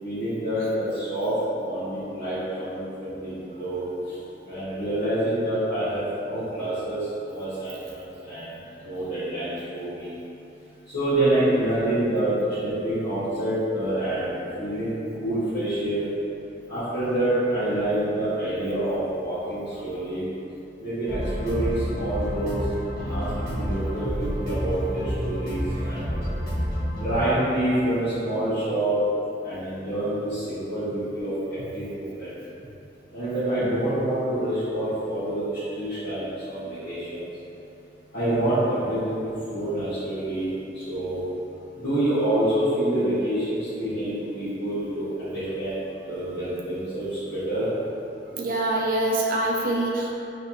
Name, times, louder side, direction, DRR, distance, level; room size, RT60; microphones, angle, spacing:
voice 1, 0.0-4.2 4.4-10.1 10.9-16.1 16.7-20.2 20.8-22.6 23.1-26.2 27.0-29.0 29.4-32.4 33.1-37.3 38.1-41.2 41.8-47.7, right 1 dB, 85° left, -17 dB, 1.4 m, -27 dB
sound 1, 21.0-27.2, equal, 55° left, 1.2 m, -29 dB
voice 2, 48.3-50.1, right 1 dB, 50° right, -2 dB, 0.5 m, -25 dB
4.4 x 3.3 x 2.8 m, 2.8 s
head